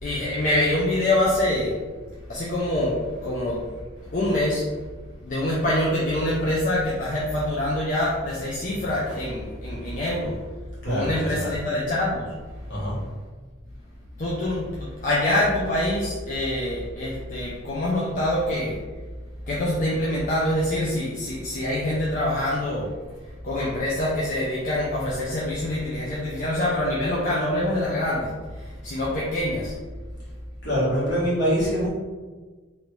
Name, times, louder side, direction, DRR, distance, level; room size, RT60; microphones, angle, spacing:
voice 1, 0.0-1.8 2.3-3.7 4.1-4.7 5.2-10.3 10.8-12.3 14.2-18.8 19.5-22.9 23.4-29.7, left 1 dB, 40° left, -6 dB, 0.5 m, -25 dB
voice 2, 10.8-11.5 12.7-13.0 30.6-31.9, equal, 60° left, -8 dB, 1.4 m, -24 dB
3.0 x 2.5 x 3.2 m, 1.4 s
head